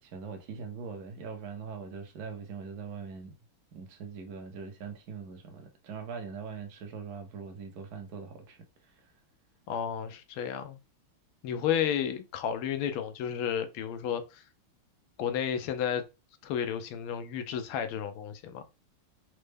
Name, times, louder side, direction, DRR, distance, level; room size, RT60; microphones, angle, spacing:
voice 1, 0.0-3.3 3.7-8.6 8.9-9.1, right 5 dB, 60° right, 1.1 m, -42 dB
voice 2, 9.7-10.8 11.4-14.4 15.2-16.0 16.4-18.6, left 8 dB, 90° left, 1.5 m, -32 dB
4.3 x 2.0 x 3.3 m
omnidirectional pair, 2.3 m